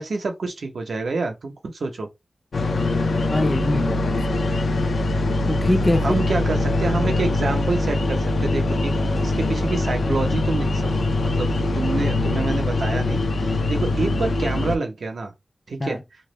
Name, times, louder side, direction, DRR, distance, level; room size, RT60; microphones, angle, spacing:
voice 1, 0.0-2.1 6.0-11.5 11.7-15.3 15.7-16.0, right 3 dB, 80° right, 0.6 m, -27 dB
sound 1, 2.5-14.8, left 2 dB, 80° left, 0.4 m, -22 dB
voice 2, 3.3-4.4 5.5-6.2 15.8-16.0, left 1 dB, 15° left, 0.4 m, -24 dB
2.3 x 2.0 x 3.0 m
wide cardioid pair, 115°, 0 cm